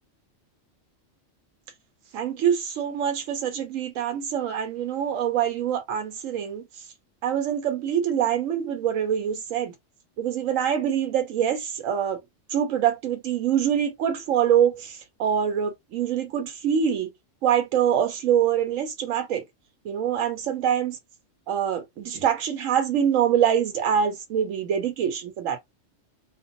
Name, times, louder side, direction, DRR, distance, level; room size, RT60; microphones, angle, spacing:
voice 1, 2.1-6.6 7.2-9.7 10.2-12.2 12.5-17.1 17.4-19.4 19.8-21.0 21.5-25.6, right 9 dB, 85° right, 1.0 m, -24 dB
2.5 x 2.2 x 2.5 m
omnidirectional pair, 1.3 m